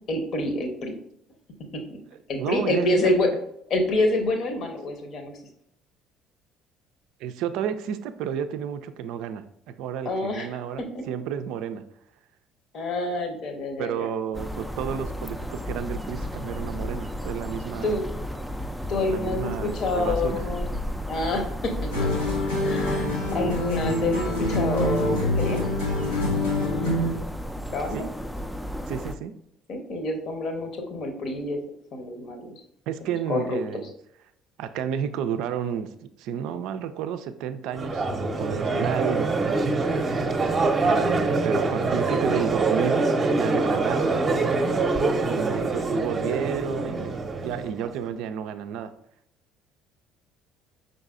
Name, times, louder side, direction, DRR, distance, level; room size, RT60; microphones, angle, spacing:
voice 1, 0.1-0.9 1.7-2.0 2.3-3.3 3.7-5.4 10.0-11.1 12.7-14.1 17.8-18.1 18.9-20.7 21.1-22.3 22.6-25.6 27.7-28.1 29.7-31.6 31.9-32.6 33.0-33.6 41.3-41.5, left 2 dB, 50° left, 5 dB, 0.9 m, -27 dB
voice 2, 2.4-3.1 7.2-11.9 13.8-17.9 19.1-20.4 27.9-28.1 28.9-29.3 32.9-33.9 34.6-39.6 40.8-44.2 45.2-48.9, right 8 dB, 60° right, 10 dB, 0.4 m, -31 dB
sound 1, 14.3-29.2, equal, ahead, 0.4 m, -33 dB
sound 2, 21.9-27.2, left 1 dB, 80° left, 1.3 m, -26 dB
Crowd, 37.7-47.9, right 3 dB, 30° right, 0.7 m, -24 dB
5.4 x 3.9 x 2.4 m, 0.74 s
figure-of-eight pair, 55°, 0 cm